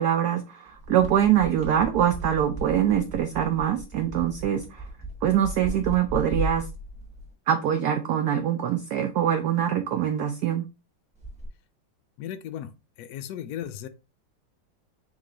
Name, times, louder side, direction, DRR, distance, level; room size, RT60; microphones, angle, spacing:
voice 1, 0.0-4.8 5.2-6.6 7.5-10.6, right 10 dB, 85° right, 0.8 m, -24 dB
sound 1, 0.7-7.3 11.2-11.5, right 1 dB, 5° right, 1.0 m, -36 dB
voice 2, 12.2-12.7 13.0-13.9, left 10 dB, 85° left, 0.8 m, -35 dB
3.8 x 3.1 x 3.7 m
omnidirectional pair, 2.2 m